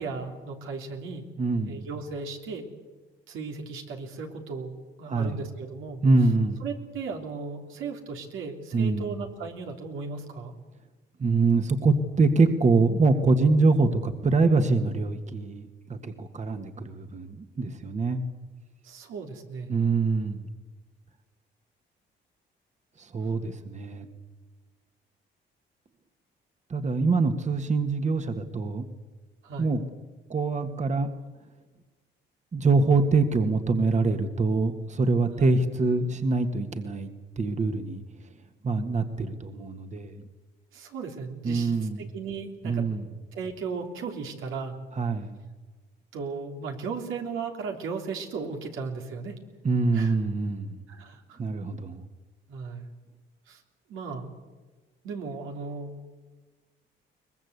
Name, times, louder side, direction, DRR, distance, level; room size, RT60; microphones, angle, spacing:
voice 1, 0.0-1.3 1.6-2.7 3.3-6.0 6.6-10.6 18.8-19.7 29.4-29.7 35.4-35.5 40.7-42.9 43.3-44.8 46.1-49.4 49.9-50.1 50.9-51.4 52.5-52.9 53.5-53.6 53.9-54.3 55.0-56.0, right 4 dB, 85° right, 3 dB, 3.4 m, -36 dB
voice 2, 1.4-1.9 5.1-5.4 6.0-6.6 8.7-9.1 11.2-18.3 19.7-20.5 23.0-24.1 26.7-28.9 29.6-29.8 30.3-31.1 32.5-37.1 37.4-38.0 38.6-40.2 41.4-42.1 42.6-43.1 44.9-45.4 49.6-50.8 51.4-52.0, right 3 dB, 35° right, 7 dB, 1.8 m, -24 dB
23.0 x 20.5 x 8.2 m, 1.3 s
cardioid pair, 90°, 20 cm